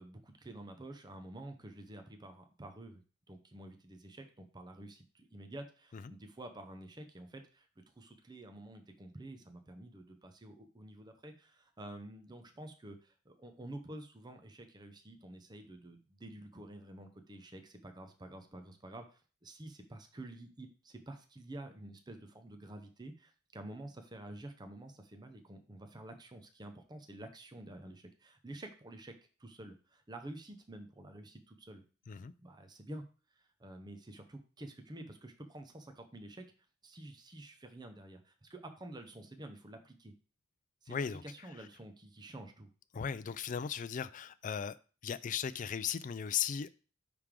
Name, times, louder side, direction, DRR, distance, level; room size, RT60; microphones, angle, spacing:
voice 1, 0.0-3.0 3.3-29.1 29.4-31.8 32.4-33.0 33.4-36.4 36.8-40.1 40.8-42.7, right 1 dB, 20° right, 6 dB, 0.7 m, -49 dB
voice 2, 40.9-41.2 42.9-44.8 45.0-46.7, left 7 dB, 40° left, 14 dB, 0.4 m, -37 dB
9.5 x 3.4 x 3.7 m, 0.37 s
head